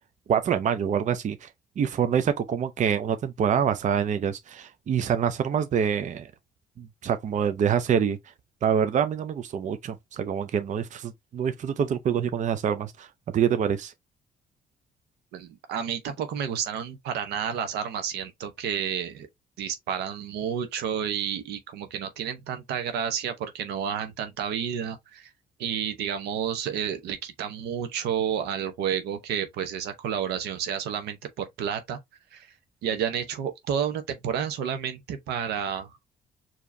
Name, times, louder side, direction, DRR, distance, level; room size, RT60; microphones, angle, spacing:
voice 1, 0.3-1.5 1.8-6.3 6.8-8.2 8.6-13.1 13.3-13.9, right 8 dB, 50° right, 0.6 m, -26 dB
voice 2, 15.3-19.3 19.6-25.3 25.6-32.0 32.3-32.5 32.8-36.0, right 8 dB, 85° right, 0.9 m, -30 dB
4.8 x 2.9 x 2.7 m
cardioid pair, 80°, 16 cm